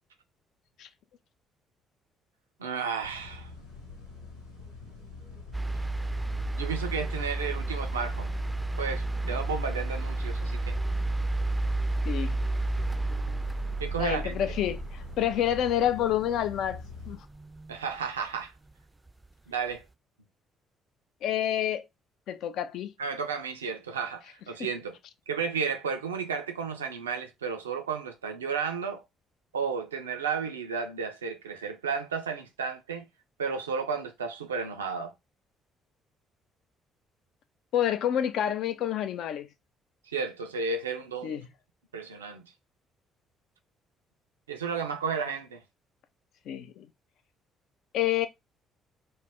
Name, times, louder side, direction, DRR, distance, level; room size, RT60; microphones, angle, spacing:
voice 1, 2.6-3.5 6.5-8.3 8.8-10.8 13.8-14.3 17.7-18.5 19.5-19.9 23.0-25.0 25.3-29.0 29.5-33.0 33.4-35.1 40.1-41.4 41.9-42.4 44.5-45.6, right 5 dB, 80° right, 0.3 m, -33 dB
sound 1, 3.0-17.2, left 3 dB, 85° left, 0.8 m, -45 dB
sound 2, 5.5-17.8 19.1-19.2, right 2 dB, 15° right, 0.4 m, -32 dB
voice 2, 12.1-12.4 14.0-16.8 17.1-17.2 21.2-21.8 22.3-22.9 37.7-39.5 41.2-41.4 46.5-46.9 47.9-48.3, left 11 dB, 60° left, 0.3 m, -28 dB
2.2 x 2.0 x 3.4 m
figure-of-eight pair, 45°, 0 cm